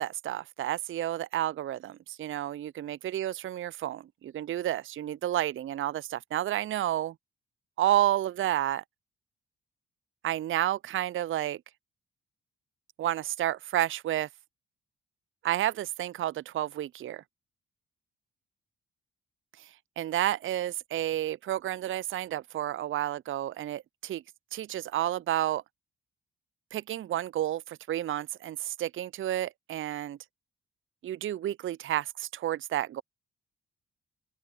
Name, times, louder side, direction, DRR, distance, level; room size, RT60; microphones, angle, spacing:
voice 1, 0.0-7.1 7.8-8.8 10.2-11.6 13.0-14.3 15.4-17.2 20.0-24.2 24.5-25.6 26.7-30.2 31.0-33.0, right 13 dB, 40° right, 0.5 m, -30 dB
open air
hypercardioid pair, 40°, 31 cm